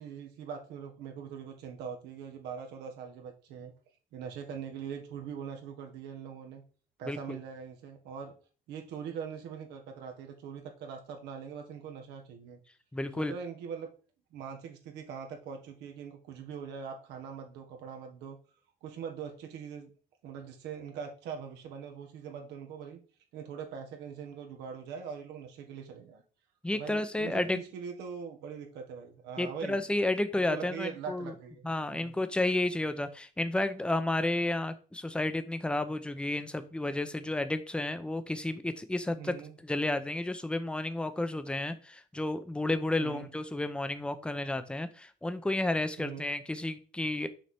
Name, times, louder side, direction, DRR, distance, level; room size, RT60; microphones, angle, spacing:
voice 1, 0.0-3.7 4.1-6.6 7.0-8.3 8.7-12.6 13.2-13.9 14.3-18.4 18.8-19.9 20.2-23.0 23.3-26.2 26.7-29.8 30.3-32.1 39.2-39.6 43.0-43.3 46.0-46.3, right 7 dB, 85° right, 3 dB, 1.6 m, -42 dB
voice 2, 7.1-7.4 12.9-13.3 26.6-27.6 29.4-31.3 31.6-39.4 39.6-47.3, left 2 dB, 5° left, 10 dB, 0.7 m, -31 dB
6.3 x 4.9 x 4.5 m, 0.38 s
cardioid pair, 110°, 17 cm